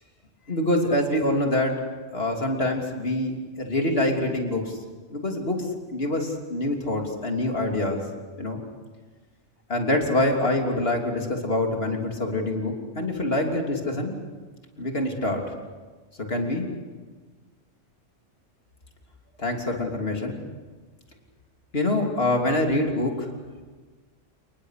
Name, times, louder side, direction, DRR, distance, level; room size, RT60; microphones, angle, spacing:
voice 1, 0.5-1.7 2.1-4.8 5.1-8.0 8.4-8.6 9.7-14.2 14.8-15.4 16.3-16.7 19.4-20.4 21.7-23.3, left 1 dB, 50° left, 2 dB, 3.4 m, -25 dB
30.0 x 19.5 x 6.6 m, 1.4 s
omnidirectional pair, 1.3 m